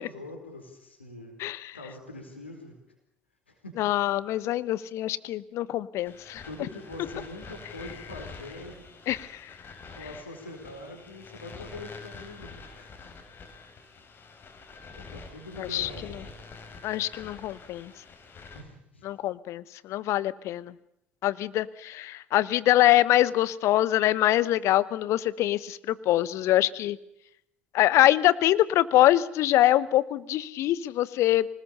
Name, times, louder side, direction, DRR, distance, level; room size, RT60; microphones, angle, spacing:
voice 1, 0.0-1.3 1.7-2.7 3.5-3.7 6.4-8.8 10.0-12.9 14.9-16.1 18.5-19.0, left 2 dB, 85° left, 3 dB, 4.5 m, -43 dB
voice 2, 1.4-1.8 3.8-6.4 9.1-9.5 15.6-15.9 16.8-17.9 19.0-20.7 21.2-27.0 27.7-31.5, left 14 dB, 50° left, 20 dB, 1.0 m, -24 dB
sound 1, 6.0-18.6, left 4 dB, 35° left, 4.8 m, -46 dB
25.5 x 20.0 x 6.9 m, 0.78 s
figure-of-eight pair, 60°, 6 cm